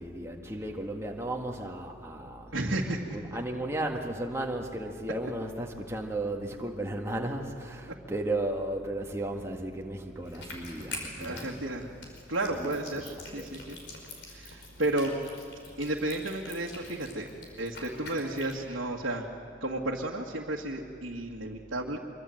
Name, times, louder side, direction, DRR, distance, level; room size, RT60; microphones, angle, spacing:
voice 1, 0.0-2.6 2.9-11.8 12.5-13.5, right 1 dB, 15° right, 1 dB, 1.8 m, -35 dB
voice 2, 2.5-3.1 11.2-11.9 12.3-13.8 14.3-15.2 15.8-17.3 17.6-19.3 19.6-22.0, right 1 dB, 70° right, -3 dB, 1.8 m, -32 dB
sound 1, 10.2-18.5, left 2 dB, 60° left, 5.0 m, -45 dB
25.0 x 23.5 x 7.8 m, 2.3 s
head